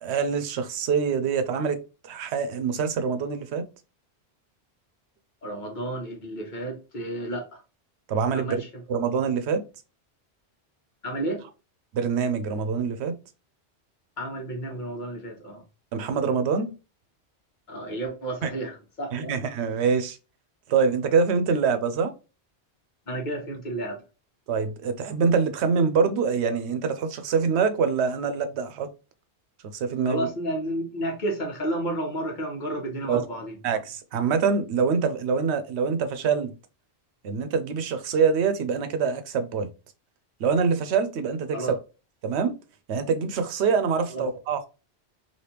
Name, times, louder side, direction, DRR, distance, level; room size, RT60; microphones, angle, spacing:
voice 1, 0.0-1.8 2.0-3.7 8.1-8.6 8.9-9.6 11.9-13.1 15.9-16.7 18.4-18.5 19.1-20.2 20.7-22.1 24.5-28.9 29.7-30.3 33.1-33.2 33.6-36.5 37.2-39.7 40.4-41.7 42.2-42.5 42.9-44.7, right 5 dB, 85° right, 0.9 m, -25 dB
voice 2, 5.4-7.6 8.3-8.7 11.0-11.4 14.2-15.6 17.7-19.3 23.1-24.0 30.0-33.6 41.5-41.8 44.1-44.2, right 1 dB, 45° left, 1.3 m, -31 dB
3.3 x 2.8 x 2.8 m
omnidirectional pair, 1.1 m